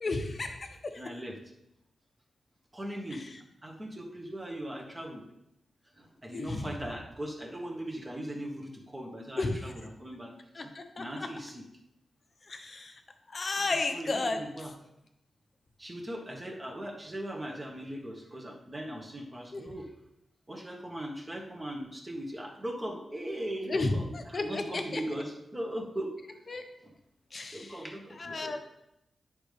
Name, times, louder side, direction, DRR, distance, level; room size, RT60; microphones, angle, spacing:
voice 1, 0.0-1.0 3.1-3.3 6.3-6.7 9.4-9.6 10.5-11.0 12.5-13.0 13.3-14.4 19.5-19.6 23.7-25.0 26.5-26.6 27.3-27.8 28.2-28.6, left 3 dB, 40° left, 6 dB, 1.0 m, -33 dB
voice 2, 1.0-1.4 2.7-3.2 3.6-5.2 5.9-10.3 11.0-11.6 13.6-14.7 15.8-19.9 20.5-26.1 26.8-26.9 27.5-28.6, right 1 dB, 20° right, -1 dB, 1.5 m, -39 dB
10.0 x 5.3 x 3.4 m, 0.84 s
wide cardioid pair, 105°, 0 cm